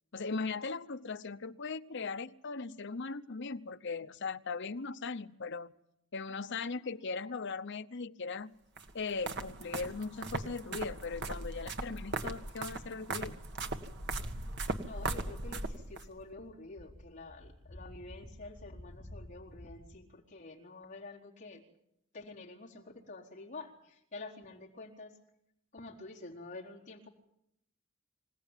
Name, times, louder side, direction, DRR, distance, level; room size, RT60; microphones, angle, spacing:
voice 1, 0.1-5.7 6.1-8.5 8.9-13.4, left 4 dB, 60° left, 11 dB, 0.8 m, -39 dB
sound 1, 8.8-16.1, right 2 dB, 55° right, 1.8 m, -38 dB
voice 2, 14.8-21.6 22.1-25.2 25.7-27.1, left 3 dB, 40° left, -3 dB, 4.1 m, -48 dB
sound 2, 15.7-19.9, left 1 dB, 15° right, 7.1 m, -52 dB
25.5 x 17.5 x 9.2 m, 0.80 s
head